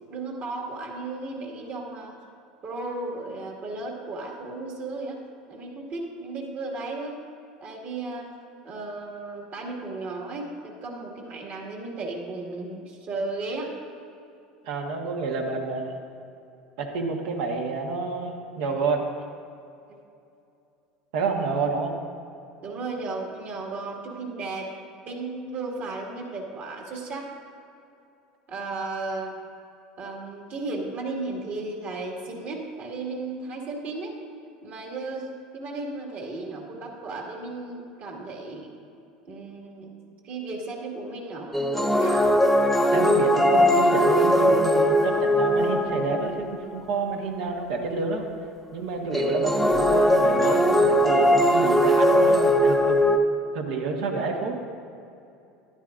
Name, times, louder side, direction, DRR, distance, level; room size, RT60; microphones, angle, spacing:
voice 1, 0.1-2.1 2.6-5.2 5.5-7.2 7.6-8.3 8.6-13.7 22.6-24.7 25.1-27.3 28.5-29.4 30.0-34.2 34.6-35.3 35.5-38.7 39.3-39.9 40.2-42.3, right 3 dB, 45° right, -1 dB, 2.1 m, -34 dB
voice 2, 14.6-16.0 16.8-19.1 21.1-22.0 42.9-48.3 48.7-53.0 53.5-54.6, right 4 dB, 70° right, 2 dB, 1.3 m, -29 dB
sound 1, 41.5-46.6 49.1-53.2, equal, 5° left, 0.6 m, -20 dB
12.0 x 11.0 x 2.6 m, 2.6 s
hypercardioid pair, 80°, 4 cm